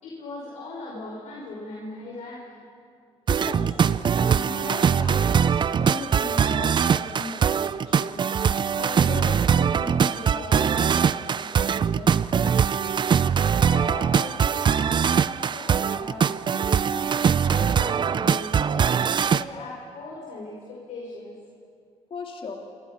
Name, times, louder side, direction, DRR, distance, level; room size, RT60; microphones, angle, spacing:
voice 1, 0.0-2.6 13.5-18.9 19.2-21.3, left 2 dB, 75° left, -4 dB, 5.3 m, -39 dB
voice 2, 3.3-8.2 8.7-12.8 22.1-22.5, left 4 dB, 50° left, 1 dB, 3.2 m, -38 dB
sound 1, 3.3-19.4, right 7 dB, 40° right, 0.6 m, -22 dB
28.0 x 27.0 x 5.7 m, 2.3 s
cardioid pair, 95°, 12 cm